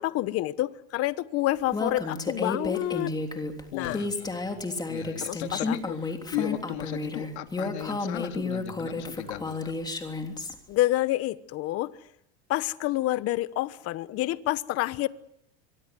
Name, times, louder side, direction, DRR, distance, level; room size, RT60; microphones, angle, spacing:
voice 1, 0.0-3.1 3.7-4.0 5.2-5.8 10.7-11.9 12.5-15.1, left 16 dB, 45° left, 16 dB, 1.1 m, -28 dB
Female speech woman speaking, 1.7-10.5, left 3 dB, 10° left, 3.3 m, -32 dB
voice 2, 3.7-4.6 4.9-9.7, left 12 dB, 90° left, 6 dB, 2.7 m, -36 dB
26.5 x 24.0 x 7.7 m, 0.73 s
supercardioid pair, 135°, 33 cm